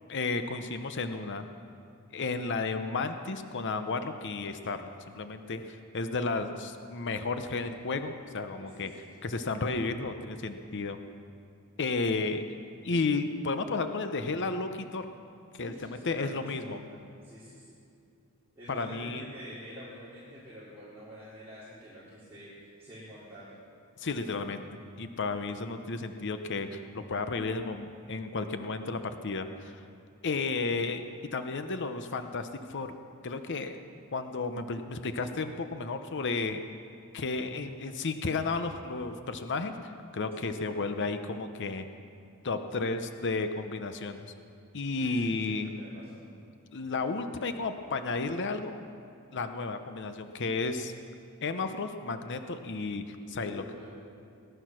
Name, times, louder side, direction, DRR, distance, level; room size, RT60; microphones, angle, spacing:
voice 1, 0.1-1.4 2.1-8.9 9.2-11.0 11.8-12.4 12.8-15.1 15.5-16.8 18.7-19.3 24.0-24.7 25.0-29.8 30.2-31.0 31.3-32.9 33.2-33.8 34.1-36.6 37.1-41.9 42.4-44.3 44.7-45.7 46.7-48.8 49.3-50.9 51.4-53.6, left 3 dB, 55° left, 8 dB, 0.8 m, -33 dB
voice 2, 8.5-9.3 15.6-17.8 18.6-23.6 40.3-40.5 44.9-46.3 53.4-53.9, equal, 10° right, -13 dB, 4.2 m, -47 dB
19.0 x 11.5 x 6.3 m, 2.5 s
head